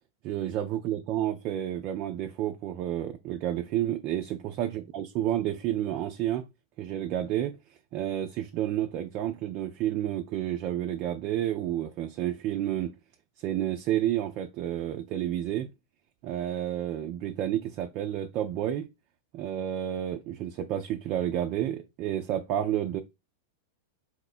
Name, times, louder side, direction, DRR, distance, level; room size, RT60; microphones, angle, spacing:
voice 1, 0.2-6.4 6.8-7.6 7.9-12.9 13.4-15.7 16.2-18.9 19.3-23.0, right 11 dB, 45° right, 0.4 m, -30 dB
4.3 x 2.2 x 4.2 m
hypercardioid pair, 105°, 0 cm